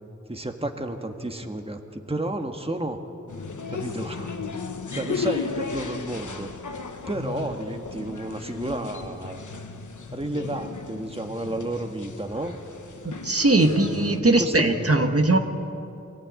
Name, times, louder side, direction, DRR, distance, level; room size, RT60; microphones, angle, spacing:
voice 1, 0.3-3.0 3.7-4.4 4.9-6.5 7.0-9.4 10.1-12.6 13.6-15.1, right 1 dB, 20° right, 4 dB, 1.6 m, -32 dB
sound 1, 3.3-14.2, left 5 dB, 85° left, 1.2 m, -35 dB
voice 2, 13.0-15.4, right 2 dB, 50° right, 4 dB, 1.7 m, -20 dB
23.5 x 15.5 x 9.6 m, 2.7 s
wide cardioid pair, 45°, 30 cm